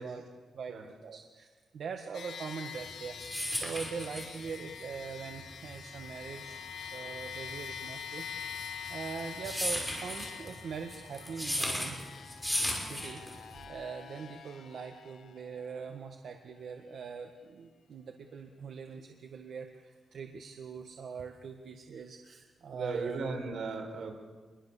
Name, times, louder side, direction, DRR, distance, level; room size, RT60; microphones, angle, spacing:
voice 1, 0.0-0.7 1.0-8.2 8.6-12.0 12.8-23.2, right 6 dB, 70° right, 4 dB, 1.6 m, -42 dB
sound 1, 2.1-15.8, left 7 dB, 80° left, 1.9 m, -45 dB
sound 2, 2.8-13.6, equal, ahead, 5.6 m, -36 dB
voice 2, 22.7-24.1, right 4 dB, 85° right, 3 dB, 4.8 m, -36 dB
26.5 x 22.0 x 7.0 m, 1.4 s
wide cardioid pair, 140°, 0 cm